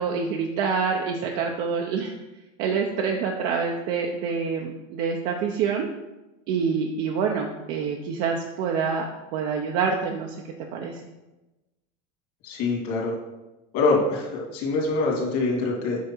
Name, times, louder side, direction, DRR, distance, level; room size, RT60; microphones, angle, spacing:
voice 1, 0.0-2.1 2.6-5.9 6.5-9.0 9.3-10.4 10.7-11.0, right 6 dB, 60° right, 1 dB, 0.9 m, -26 dB
voice 2, 12.4-13.1 13.7-16.0, left 3 dB, 55° left, -2 dB, 2.7 m, -24 dB
8.4 x 5.2 x 4.6 m, 1.0 s
cardioid pair, 160°, 18 cm